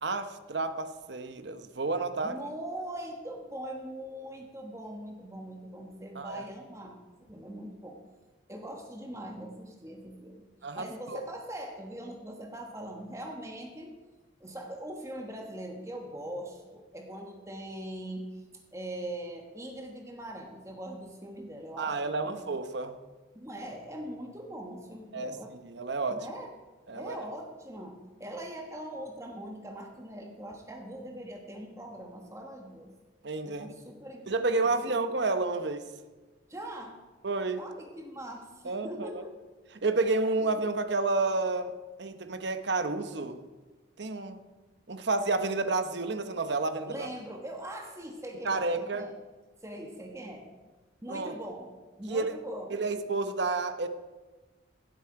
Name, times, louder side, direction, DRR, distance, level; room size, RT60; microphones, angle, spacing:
voice 1, 0.0-2.4 6.1-6.4 10.6-11.2 21.8-23.0 25.1-25.3 25.6-26.3 26.9-27.2 33.2-33.7 34.3-35.9 37.2-37.6 38.6-39.1 39.8-41.7 42.0-43.4 44.0-44.4 44.9-47.1 48.4-49.1 51.1-51.3 52.1-52.4 52.7-53.9, right 3 dB, 65° right, 10 dB, 0.9 m, -30 dB
voice 2, 2.2-8.0 8.5-10.5 10.7-13.9 14.4-18.4 18.7-22.4 23.3-25.6 26.1-26.5 26.9-32.9 33.5-34.3 34.6-35.0 36.5-37.0 37.6-39.5 40.0-40.1 40.4-40.5 46.9-49.1 49.6-50.5 51.0-51.7 52.0-52.8, right 1 dB, 15° right, 2 dB, 1.1 m, -41 dB
16.5 x 8.2 x 4.8 m, 1.3 s
head